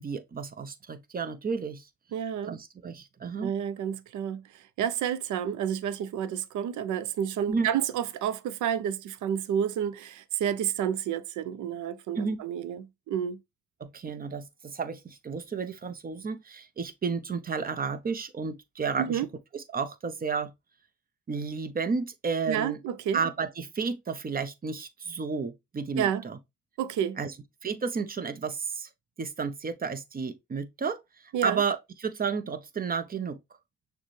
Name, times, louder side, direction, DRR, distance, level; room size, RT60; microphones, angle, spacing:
voice 1, 0.0-1.9 2.5-3.5 7.5-7.7 12.2-12.4 13.8-19.3 19.5-20.5 21.3-22.8 23.1-26.4 27.2-27.3 27.6-28.9 29.2-33.4, right 5 dB, 30° right, 0.8 m, -32 dB
voice 2, 2.1-2.5 3.4-4.4 4.8-13.4 19.0-19.3 22.5-23.2 26.0-26.2 26.8-27.2 31.3-31.6, right 9 dB, 75° right, 0.6 m, -30 dB
6.4 x 2.3 x 3.2 m
cardioid pair, 90°, 30 cm